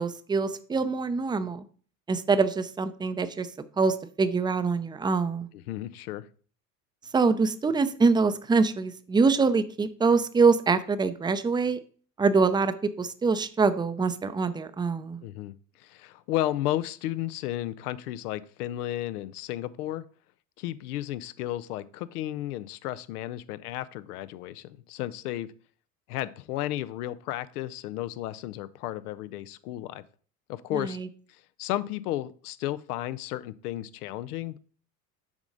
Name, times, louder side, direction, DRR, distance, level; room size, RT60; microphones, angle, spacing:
voice 1, 0.0-1.6 2.1-3.5 3.8-5.5 7.1-11.8 12.2-15.2 30.7-31.1, right 4 dB, 10° right, 11 dB, 0.6 m, -24 dB
voice 2, 5.7-6.3 15.2-20.0 20.6-25.5 26.1-30.0 30.5-31.0 31.6-34.6, left 14 dB, 75° left, 15 dB, 0.7 m, -33 dB
7.3 x 4.9 x 3.9 m, 0.43 s
hypercardioid pair, 75°, 46 cm